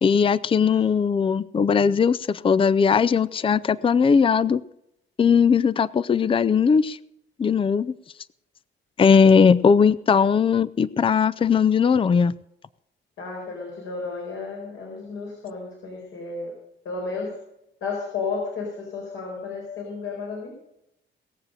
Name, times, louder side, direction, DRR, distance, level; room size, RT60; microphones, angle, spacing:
voice 1, 0.0-4.6 5.2-7.0 7.4-7.9 9.0-12.3, left 6 dB, 25° left, 19 dB, 0.5 m, -19 dB
voice 2, 13.2-16.5 16.8-17.4 17.8-20.5, left 4 dB, 75° left, -1 dB, 4.6 m, -32 dB
19.0 x 7.4 x 6.6 m, 0.81 s
cardioid pair, 90°, 20 cm